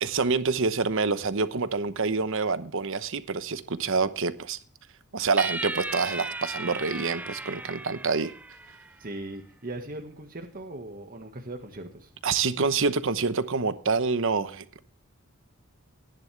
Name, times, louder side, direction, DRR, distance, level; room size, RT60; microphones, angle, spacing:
voice 1, 0.0-4.6 5.1-8.3 12.2-14.8, right 4 dB, 65° right, 12 dB, 0.9 m, -27 dB
sound 1, 5.4-8.9, right 2 dB, 5° right, 0.5 m, -36 dB
voice 2, 9.0-12.1, right 2 dB, 45° right, 4 dB, 1.7 m, -39 dB
15.0 x 10.5 x 3.3 m, 0.43 s
head